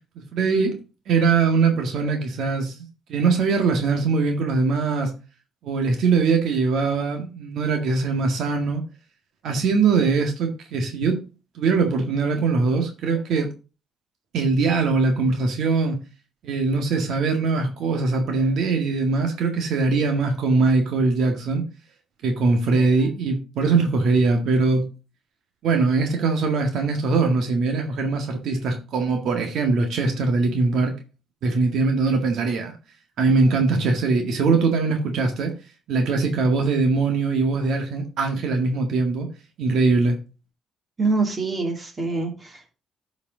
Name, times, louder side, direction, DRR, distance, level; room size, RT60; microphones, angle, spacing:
voice 1, 0.1-0.8 1.1-2.8 3.1-5.1 5.6-8.8 9.4-11.2 11.5-13.5 14.3-16.0 16.4-21.6 22.2-24.9 25.6-31.0 31.4-32.8 33.2-35.5 35.9-39.3 39.6-40.2, right 4 dB, 75° right, 1.8 m, -21 dB
voice 2, 41.0-42.7, right 3 dB, 30° right, 3.0 m, -25 dB
11.5 x 5.2 x 3.9 m
cardioid pair, 90°, 0 cm